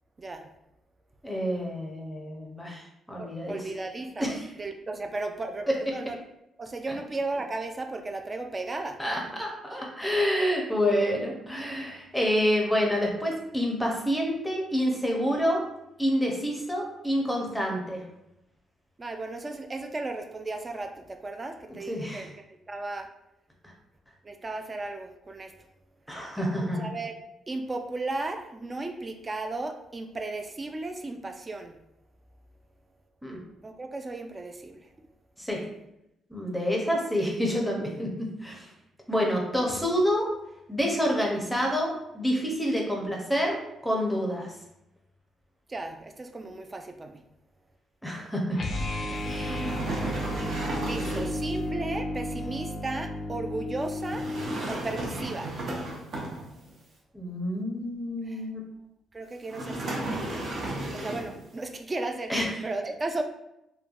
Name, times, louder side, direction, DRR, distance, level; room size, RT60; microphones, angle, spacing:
voice 1, 0.2-0.5 3.2-4.3 4.6-6.2 6.6-9.0 19.0-22.3 22.7-23.1 24.2-25.5 26.8-27.2 27.5-31.8 33.6-34.9 45.7-47.2 50.8-54.3 54.7-55.5 58.3-58.4 59.1-60.1 60.9-62.3 62.6-63.2, right 2 dB, 30° right, 5 dB, 0.3 m, -35 dB
voice 2, 1.2-3.6 4.2-4.5 9.0-15.6 16.0-18.0 21.9-22.3 26.1-26.9 33.2-33.4 35.4-35.6 36.3-38.7 39.1-40.3 40.7-43.6 43.8-44.5 48.0-48.6 49.2-49.7 50.8-51.2 57.1-58.6 62.3-62.6, equal, 5° left, -1 dB, 0.6 m, -28 dB
sound 1, 48.5-54.6, left 1 dB, 45° left, 0.4 m, -33 dB
sound 2, 49.2-51.5 54.0-56.7 59.5-61.4, right 1 dB, 55° right, 0.7 m, -34 dB
3.1 x 2.1 x 2.4 m, 0.85 s
cardioid pair, 90°, 0 cm